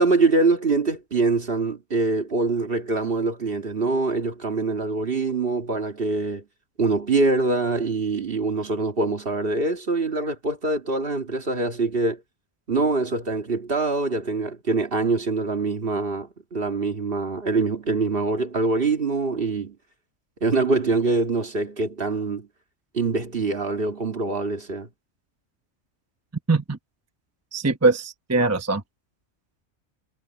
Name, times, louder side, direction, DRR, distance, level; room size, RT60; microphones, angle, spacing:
voice 1, 0.0-6.4 6.8-12.2 12.7-19.8 20.4-22.5 22.9-24.9, right 3 dB, 50° right, 2.1 m, -24 dB
voice 2, 27.5-28.8, right 3 dB, 15° right, 0.9 m, -21 dB
omnidirectional pair, 1.3 m